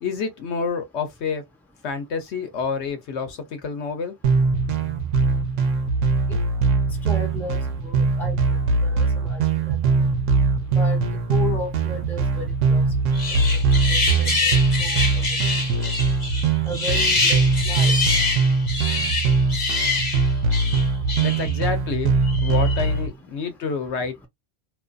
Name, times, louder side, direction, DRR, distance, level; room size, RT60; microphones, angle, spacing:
voice 1, 0.0-1.4 1.8-4.2 21.2-24.3, left 5 dB, 70° left, 0.9 m, -28 dB
sound 1, 4.2-23.1, right 4 dB, 85° right, 1.0 m, -21 dB
voice 2, 7.1-8.3 8.8-9.4 9.6-9.8 10.7-11.0 11.3-12.8 13.9-15.0 15.8-15.9 16.7-18.0, left 2 dB, ahead, 0.6 m, -34 dB
sound 2, 13.1-21.6 22.3-22.9, left 3 dB, 40° left, 0.9 m, -25 dB
2.5 x 2.5 x 2.2 m
omnidirectional pair, 1.2 m